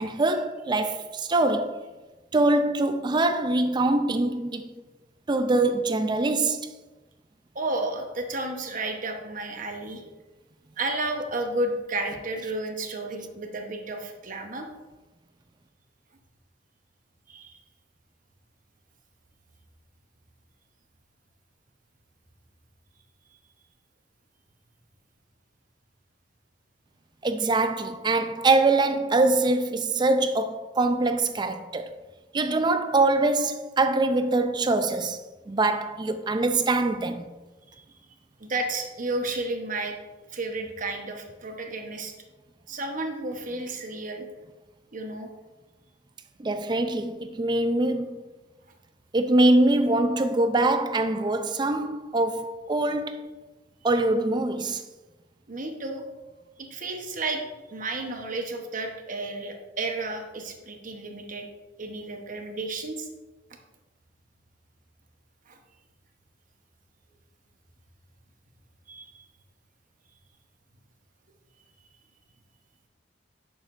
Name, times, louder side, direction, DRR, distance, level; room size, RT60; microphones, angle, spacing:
voice 1, 0.0-1.8 2.3-4.7 5.3-6.7 27.2-31.9 32.3-35.2 35.5-37.3 46.4-48.2 49.1-53.3 53.8-54.8, right 2 dB, 25° right, 0.4 m, -23 dB
voice 2, 7.5-10.0 10.8-14.7 17.3-17.6 37.7-37.8 38.4-39.9 40.3-42.1 42.7-44.3 44.9-45.3 55.5-56.0 56.7-57.4 57.7-61.5 61.8-63.1 65.5-65.6 68.9-69.2, right 2 dB, 45° right, 1.0 m, -32 dB
8.9 x 6.6 x 2.5 m
head